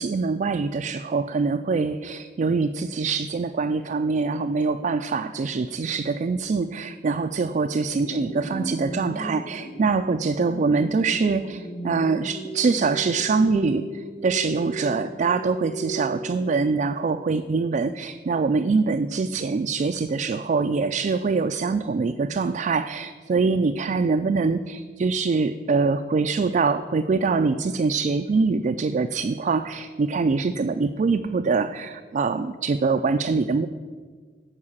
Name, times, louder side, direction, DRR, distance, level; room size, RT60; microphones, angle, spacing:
voice 1, 0.0-33.7, right 4 dB, 45° right, 6 dB, 0.3 m, -24 dB
sound 1, 7.9-16.9, right 1 dB, 45° left, 3.3 m, -36 dB
11.0 x 4.8 x 7.2 m, 1.6 s
head